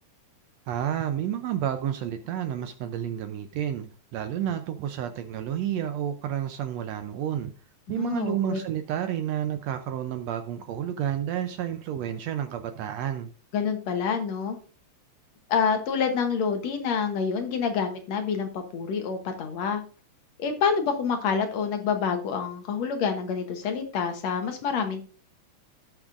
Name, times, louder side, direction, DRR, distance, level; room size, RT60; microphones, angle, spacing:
voice 1, 0.7-7.5 7.9-13.3, right 10 dB, 80° right, 9 dB, 1.5 m, -30 dB
voice 2, 8.0-8.6 13.5-14.6 15.5-19.8 20.4-25.1, left 6 dB, 65° left, 6 dB, 2.1 m, -27 dB
17.0 x 6.1 x 2.5 m, 0.38 s
omnidirectional pair, 3.7 m